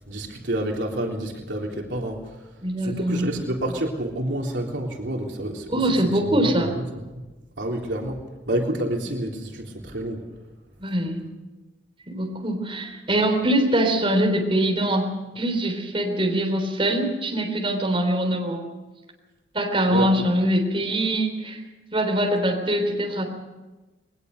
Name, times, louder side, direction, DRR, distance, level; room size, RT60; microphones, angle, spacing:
voice 1, 0.1-2.5 2.8-6.9 7.1-7.2 7.6-10.2 19.9-20.3, right 1 dB, 75° right, 0 dB, 3.6 m, -29 dB
voice 2, 2.6-3.3 5.7-6.7 10.8-11.3 12.1-15.1 15.4-18.6 19.5-21.6 21.9-23.2, right 1 dB, 30° right, 2 dB, 3.6 m, -23 dB
21.5 x 19.5 x 6.7 m, 1.1 s
head